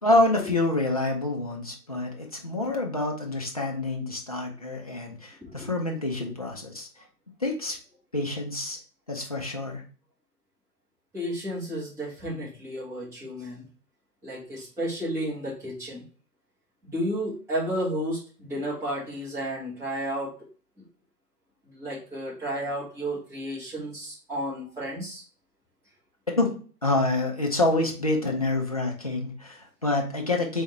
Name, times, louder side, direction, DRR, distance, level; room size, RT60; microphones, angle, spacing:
voice 1, 0.0-6.9 7.4-7.8 8.1-8.8 9.1-9.8 26.4-26.5 26.8-30.6, left 2 dB, 25° left, 1 dB, 0.4 m, -27 dB
voice 2, 5.4-5.7 11.1-13.6 14.2-16.0 16.8-20.3 21.7-25.2, equal, 5° right, -8 dB, 1.3 m, -32 dB
3.5 x 3.5 x 3.1 m, 0.40 s
figure-of-eight pair, 135°, 48 cm